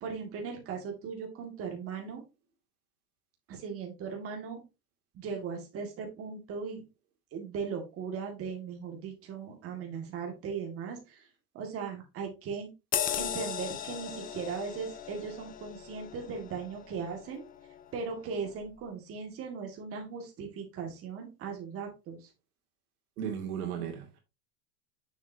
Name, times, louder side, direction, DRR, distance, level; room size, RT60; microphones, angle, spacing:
voice 1, 0.0-2.2 3.5-4.6 5.1-6.8 7.3-11.2 11.5-12.7 13.2-17.4 17.9-22.3, right 5 dB, 30° right, 1.9 m, -38 dB
sound 1, 12.9-17.9 18.3-18.5, left 10 dB, 20° left, 0.6 m, -37 dB
voice 2, 23.2-24.2, right 8 dB, 80° right, 2.4 m, -35 dB
7.0 x 6.4 x 2.7 m
supercardioid pair, 145°, 45 cm